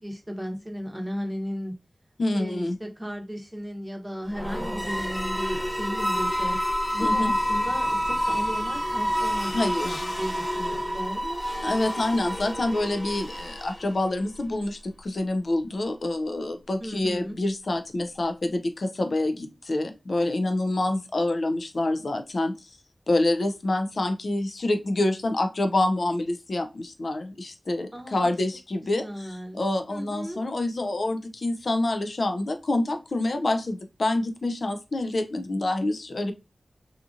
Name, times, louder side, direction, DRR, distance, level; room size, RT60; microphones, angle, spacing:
voice 1, 0.0-1.7 2.3-6.6 6.9-11.4 16.8-17.4 27.9-28.3 28.8-29.6 29.9-30.4, equal, 15° right, 2 dB, 0.8 m, -35 dB
voice 2, 2.2-2.8 7.0-7.3 9.5-10.0 11.6-22.7 23.1-29.0 29.5-36.3, left 2 dB, 75° left, 7 dB, 0.4 m, -27 dB
sound 1, 4.3-14.2, equal, 30° left, 1.0 m, -28 dB
2.8 x 2.5 x 2.4 m, 0.26 s
cardioid pair, 40°, 0 cm